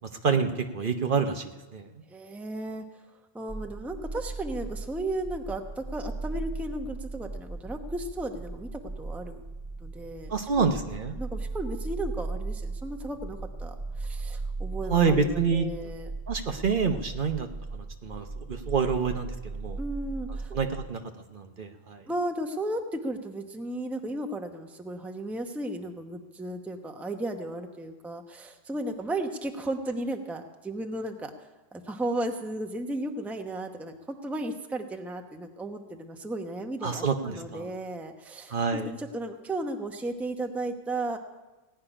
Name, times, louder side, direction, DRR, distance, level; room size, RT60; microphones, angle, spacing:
voice 1, 0.2-1.9 10.3-11.2 14.9-15.7 16.3-19.8 20.3-21.0 21.3-22.0 36.8-37.7 38.5-38.9, right 5 dB, 55° right, 6 dB, 1.0 m, -27 dB
voice 2, 2.1-2.8 3.3-9.5 9.8-10.8 11.2-16.1 19.8-20.5 22.1-41.2, right 1 dB, ahead, 4 dB, 0.8 m, -35 dB
sound 1, 3.5-20.9, right 3 dB, 30° right, 1.5 m, -37 dB
16.5 x 5.7 x 10.0 m, 1.1 s
omnidirectional pair, 1.1 m